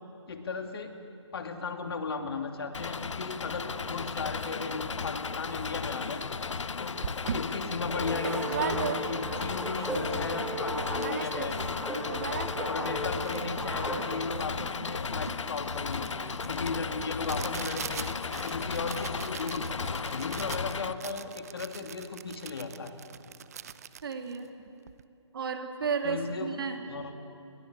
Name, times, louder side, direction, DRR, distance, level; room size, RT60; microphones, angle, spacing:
voice 1, 0.3-0.9 1.3-6.2 6.8-11.6 12.7-16.1 16.5-18.1 18.4-22.9 26.0-27.1, left 4 dB, 55° left, 6 dB, 2.7 m, -36 dB
Engine, 2.7-20.9, left 5 dB, 75° left, 0.9 m, -35 dB
sound 1, 7.0-9.4 9.8-9.9 10.1-10.6 10.9-11.7 11.9-25.0, right 8 dB, 30° right, 0.7 m, -40 dB
sound 2, 7.9-14.3, right 1 dB, ahead, 2.5 m, -36 dB
voice 2, 24.0-24.5 25.3-26.8, right 5 dB, 50° right, 5 dB, 2.7 m, -33 dB
29.5 x 20.5 x 8.3 m, 2.7 s
hypercardioid pair, 165°, 16 cm